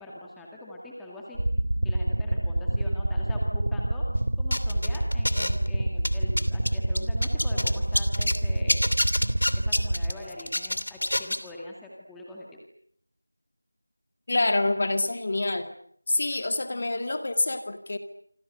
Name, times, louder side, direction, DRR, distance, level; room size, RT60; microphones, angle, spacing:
voice 1, 0.0-1.4 1.8-4.0 4.4-8.8 9.5-12.5, left 1 dB, ahead, -3 dB, 1.9 m, -42 dB
sound 1, 1.3-10.1, right 1 dB, 80° right, 2.3 m, -27 dB
sound 2, 4.5-5.7 6.0-8.4 8.7-11.5, left 1 dB, 75° left, 2.9 m, -27 dB
voice 2, 14.3-15.7 16.1-18.0, left 2 dB, 30° left, 8 dB, 2.1 m, -26 dB
27.0 x 27.0 x 6.6 m, 0.66 s
figure-of-eight pair, 175°, 0 cm